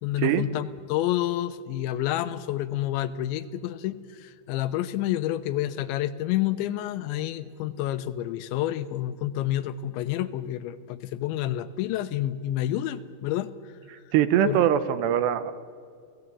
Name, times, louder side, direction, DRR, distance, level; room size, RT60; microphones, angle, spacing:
voice 1, 0.0-13.5 14.4-14.6, left 13 dB, 90° left, 12 dB, 3.3 m, -29 dB
voice 2, 14.1-15.5, right 10 dB, 75° right, 12 dB, 3.2 m, -22 dB
30.0 x 18.0 x 8.6 m, 2.2 s
omnidirectional pair, 5.1 m